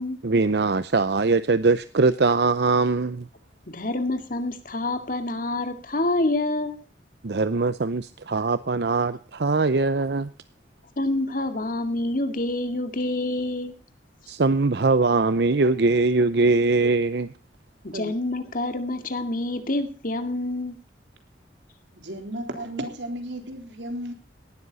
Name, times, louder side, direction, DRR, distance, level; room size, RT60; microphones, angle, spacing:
voice 1, 0.2-3.3 7.2-10.3 14.3-17.3 17.9-18.1, right 3 dB, 65° right, 0.6 m, -22 dB
voice 2, 3.7-6.8 11.0-13.7 17.8-20.8, left 2 dB, 50° left, 2.1 m, -27 dB
voice 3, 22.0-24.1, right 1 dB, 80° right, 3.7 m, -34 dB
18.0 x 12.5 x 4.1 m
head